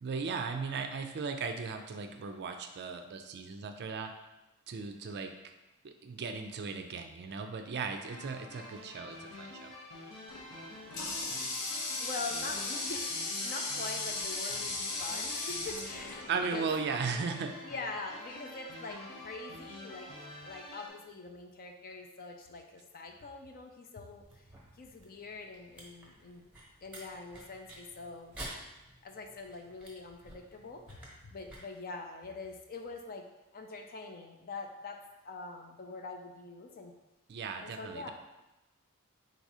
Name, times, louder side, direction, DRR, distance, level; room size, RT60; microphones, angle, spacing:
voice 1, 0.0-4.1 4.7-5.3 5.8-9.7 16.3-17.5 37.3-38.1, right 5 dB, 50° right, 6 dB, 0.4 m, -37 dB
sound 1, 8.1-20.9, left 1 dB, 90° left, 1.1 m, -48 dB
Water tap faucet, 10.3-16.8, left 3 dB, 70° left, 0.7 m, -37 dB
voice 2, 12.0-16.3 16.5-16.7 17.6-20.1 20.4-24.4 24.8-26.5 26.8-28.4 29.0-31.0 31.2-33.2 33.5-36.9 37.6-38.1, left 3 dB, 40° left, 4 dB, 0.4 m, -44 dB
sound 2, 24.2-31.6, right 1 dB, 5° right, 1.0 m, -51 dB
4.0 x 2.7 x 4.7 m, 0.99 s
head